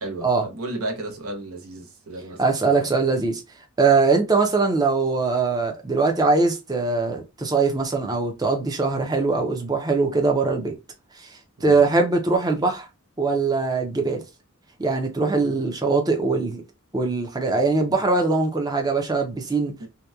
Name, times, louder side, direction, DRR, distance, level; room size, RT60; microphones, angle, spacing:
voice 1, 0.0-2.9 11.6-11.9 19.8-19.9, right 2 dB, 80° right, 0.8 m, -34 dB
voice 2, 2.4-3.4 3.8-10.8 11.2-11.3 11.6-12.9 13.2-14.2 14.8-16.6 16.9-19.9, right 3 dB, 20° right, 0.5 m, -22 dB
2.8 x 2.1 x 2.3 m
head